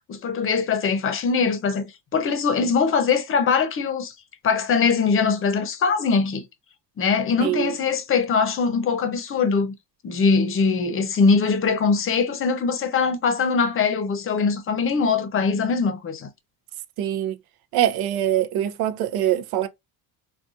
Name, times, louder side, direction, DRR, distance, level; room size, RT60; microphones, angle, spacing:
voice 1, 0.1-4.1 4.4-6.4 7.0-9.7 10.0-16.3, left 5 dB, 35° left, 0.7 m, -22 dB
voice 2, 7.4-7.7 17.0-17.4 17.7-19.7, right 12 dB, 75° right, 0.6 m, -23 dB
3.9 x 2.4 x 2.4 m
cardioid pair, 130°, 38 cm